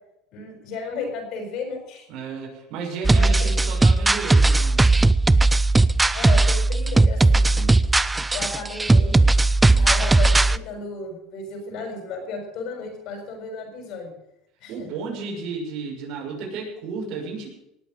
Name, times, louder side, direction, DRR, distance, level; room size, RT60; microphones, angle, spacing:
voice 1, 0.3-2.1 3.1-3.7 6.1-7.9 8.3-9.2 9.8-14.1 14.6-14.9, left 4 dB, 60° left, 4 dB, 6.6 m, -34 dB
voice 2, 2.1-4.9 9.6-9.9 14.7-17.5, right 4 dB, 55° right, -1 dB, 6.4 m, -33 dB
sound 1, 3.0-10.6, right 2 dB, 10° right, 0.5 m, -17 dB
18.5 x 8.3 x 7.9 m, 0.83 s
supercardioid pair, 125°, 0 cm